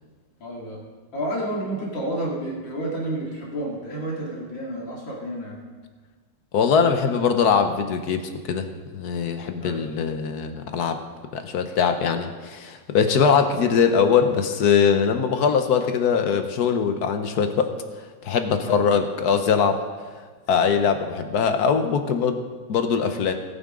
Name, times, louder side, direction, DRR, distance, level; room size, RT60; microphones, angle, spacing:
voice 1, 0.4-0.8 1.1-5.6 9.6-9.9 18.5-18.8, right 1 dB, 85° left, -4 dB, 3.2 m, -30 dB
voice 2, 6.5-11.0 11.3-17.7 18.2-19.8 20.5-22.4 22.7-23.3, left 6 dB, 65° left, 7 dB, 1.3 m, -21 dB
19.5 x 9.2 x 3.7 m, 1.4 s
omnidirectional pair, 2.0 m